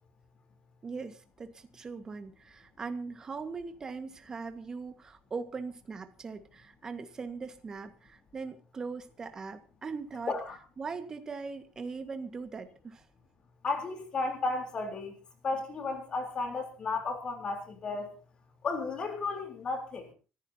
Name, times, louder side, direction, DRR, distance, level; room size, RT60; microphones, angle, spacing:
voice 1, 0.8-10.3 10.8-13.0, right 4 dB, 20° right, 8 dB, 1.7 m, -40 dB
voice 2, 13.6-15.1 15.4-18.1 18.6-20.1, left 3 dB, 30° left, 4 dB, 3.8 m, -33 dB
25.0 x 15.0 x 2.9 m, 0.35 s
cardioid pair, 160°, 3 cm